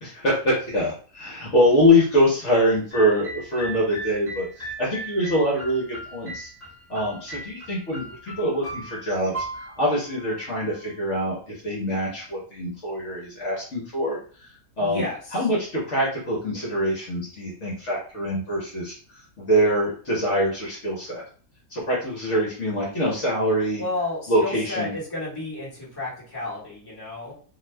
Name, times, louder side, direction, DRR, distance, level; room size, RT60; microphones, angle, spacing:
voice 1, 0.0-6.5 6.9-14.2 14.8-15.0 15.3-18.9 19.4-21.2 21.7-23.8 24.3-24.9, equal, 55° left, -4 dB, 1.1 m, -24 dB
sound 1, 2.9-10.9, right 2 dB, 10° right, 0.9 m, -38 dB
voice 2, 14.8-15.4 23.8-27.3, left 2 dB, 15° left, -6 dB, 1.0 m, -32 dB
2.6 x 2.3 x 3.2 m, 0.43 s
omnidirectional pair, 1.6 m